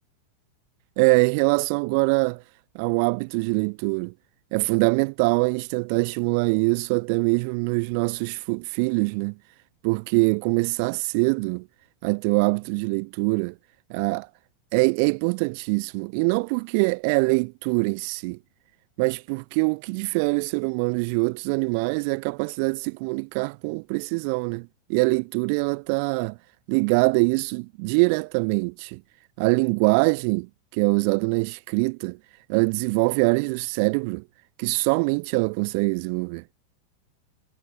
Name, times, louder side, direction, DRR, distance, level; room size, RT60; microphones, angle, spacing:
voice 1, 1.0-2.4 2.7-4.1 4.5-9.3 9.8-11.7 12.0-13.5 13.9-14.3 14.7-18.4 19.0-26.4 26.7-29.0 29.4-32.2 32.5-34.2 34.6-36.4, right 34 dB, 45° right, 1.4 m, -23 dB
figure-of-eight pair, 90°, 0 cm